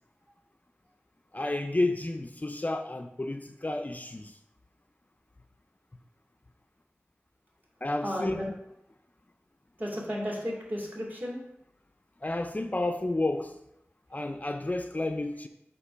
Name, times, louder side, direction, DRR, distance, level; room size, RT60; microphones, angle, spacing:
voice 1, 1.3-4.3 7.8-8.4 12.2-13.5 14.1-15.5, left 2 dB, 35° left, 7 dB, 0.5 m, -31 dB
voice 2, 8.0-8.5 9.8-11.4, equal, 40° right, -4 dB, 2.6 m, -33 dB
8.2 x 3.0 x 6.0 m, 0.81 s
wide cardioid pair, 50°, 5 cm